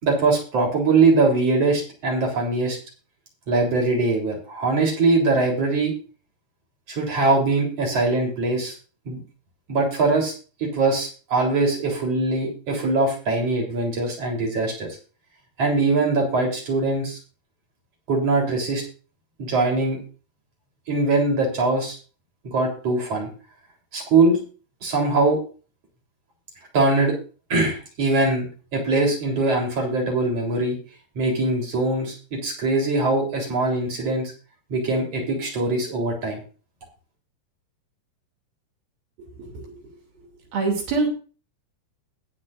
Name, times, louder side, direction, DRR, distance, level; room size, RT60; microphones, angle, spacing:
voice 1, 0.0-2.8 3.5-5.9 6.9-8.7 9.1-9.2 9.7-10.3 10.6-14.9 15.6-17.2 18.1-18.8 19.4-20.0 20.9-22.0 22.4-23.3 23.9-24.4 24.8-25.4 26.7-27.2 27.5-28.5 28.7-30.8 31.2-34.3 34.7-36.4, right 3 dB, 40° right, 0 dB, 4.4 m, -22 dB
voice 2, 39.2-39.9 40.5-41.1, right 3 dB, 60° right, 2 dB, 4.4 m, -26 dB
21.0 x 7.9 x 2.6 m, 0.37 s
omnidirectional pair, 4.9 m